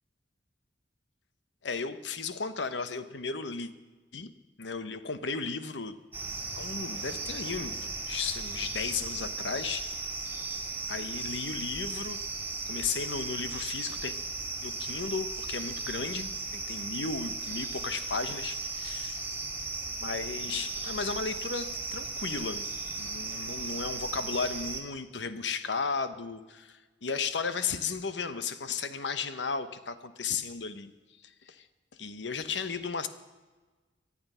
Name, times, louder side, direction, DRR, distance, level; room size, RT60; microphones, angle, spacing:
voice 1, 1.6-3.7 4.1-4.3 4.6-5.9 6.6-7.7 8.1-10.0 10.9-12.2 12.7-14.2 14.6-19.2 20.0-22.7 22.9-30.9 31.2-31.7 32.0-33.1, left 5 dB, 80° left, 11 dB, 1.0 m, -35 dB
sound 1, 6.1-24.8, right 3 dB, 10° right, 2.0 m, -36 dB
23.5 x 8.7 x 5.6 m, 1.3 s
head